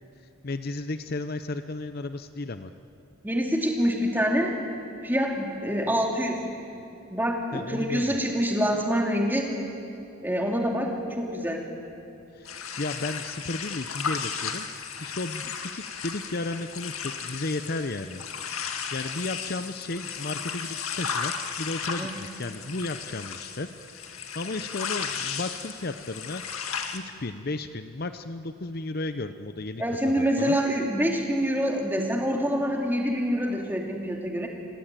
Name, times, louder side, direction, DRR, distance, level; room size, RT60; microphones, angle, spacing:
voice 1, 0.4-2.7 7.5-8.2 12.3-14.7 15.0-18.2 18.9-23.7 24.0-26.4 26.9-30.6, left 2 dB, 45° left, 10 dB, 0.7 m, -34 dB
voice 2, 3.2-4.6 5.0-6.4 7.1-9.5 10.2-11.6 22.0-22.1 29.8-34.5, equal, 10° right, 1 dB, 2.7 m, -26 dB
sound 1, 12.4-27.0, left 6 dB, 80° left, 1.9 m, -35 dB
27.0 x 20.5 x 9.2 m, 2.9 s
head